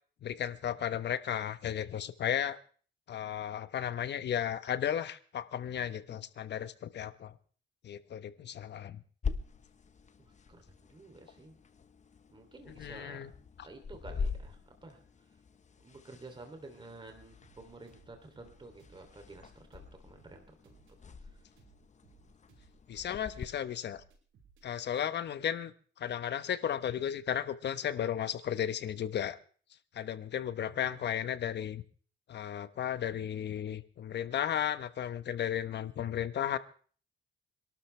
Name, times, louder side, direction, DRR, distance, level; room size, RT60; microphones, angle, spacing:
voice 1, 0.2-2.6 3.1-7.3 7.8-9.0 12.7-13.3 22.9-24.0 24.6-25.7 26.0-29.4 29.9-31.8 32.3-36.6, left 9 dB, 60° left, 12 dB, 1.2 m, -34 dB
sound 1, 9.2-23.5, left 5 dB, 35° left, 1.2 m, -44 dB
voice 2, 10.2-11.5 12.3-13.2 13.6-15.3 15.8-20.8 21.2-21.4 30.6-31.1, right 2 dB, 25° right, 5 dB, 3.1 m, -52 dB
sound 2, 17.4-24.7, right 5 dB, 75° right, 5.6 m, -62 dB
26.0 x 12.5 x 3.4 m, 0.43 s
cardioid pair, 90°, 20 cm